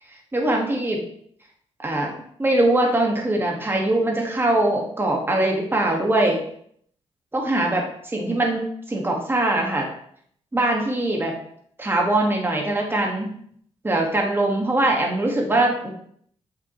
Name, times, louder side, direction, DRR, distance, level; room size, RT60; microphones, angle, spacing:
voice 1, 0.3-1.0 1.8-2.1 2.4-6.4 7.3-8.6 8.9-9.9 10.5-11.3 11.8-13.3 13.8-15.9, right 1 dB, 20° right, 0 dB, 1.7 m, -22 dB
7.4 x 6.0 x 3.1 m, 0.64 s
cardioid pair, 85°, 11 cm